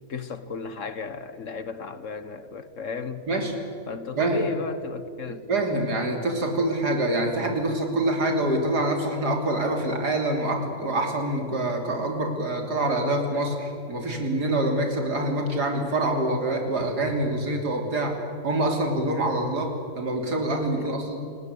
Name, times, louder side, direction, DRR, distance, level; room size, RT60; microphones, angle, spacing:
voice 1, 0.1-3.3 3.9-5.5 20.8-21.0, left 5 dB, 55° left, 1.4 m, -34 dB
voice 2, 5.3-18.2 18.4-21.2, right 1 dB, 80° right, 3.9 m, -25 dB
29.5 x 18.5 x 8.2 m
omnidirectional pair, 1.7 m